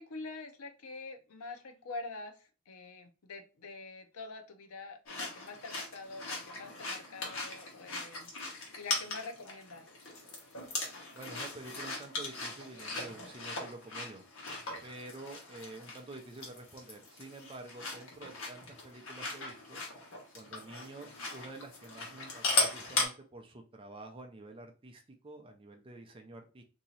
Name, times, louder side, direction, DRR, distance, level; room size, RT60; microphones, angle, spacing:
voice 1, 0.0-8.3 8.8-9.8, left 3 dB, 90° left, 0.6 m, -45 dB
sound 1, 5.1-23.1, left 3 dB, 65° left, 1.2 m, -38 dB
voice 2, 11.1-14.2 14.8-19.8 20.3-26.6, right 2 dB, 25° right, 0.4 m, -48 dB
2.9 x 2.7 x 4.0 m
head